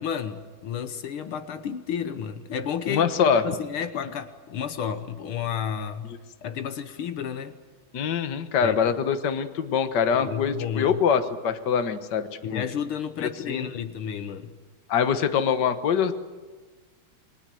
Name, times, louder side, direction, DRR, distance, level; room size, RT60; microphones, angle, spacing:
voice 1, 0.0-3.1 3.4-6.1 6.4-7.6 8.6-8.9 10.1-11.0 12.4-14.5, left 8 dB, 80° left, 10 dB, 2.0 m, -31 dB
voice 2, 2.9-3.4 7.9-12.6 13.2-13.7 14.9-16.1, left 7 dB, 55° left, 9 dB, 1.8 m, -24 dB
29.0 x 22.5 x 7.7 m, 1.4 s
omnidirectional pair, 2.3 m